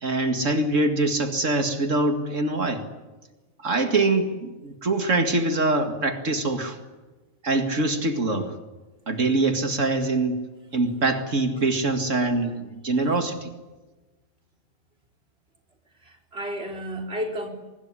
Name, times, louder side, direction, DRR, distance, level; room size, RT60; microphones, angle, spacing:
voice 1, 0.0-2.8 3.6-6.8 7.4-8.5 9.1-10.4 10.7-13.5, right 2 dB, 70° right, 6 dB, 2.5 m, -24 dB
voice 2, 16.0-17.5, equal, 50° right, 3 dB, 4.2 m, -32 dB
25.0 x 21.0 x 9.9 m, 1.2 s
omnidirectional pair, 1.3 m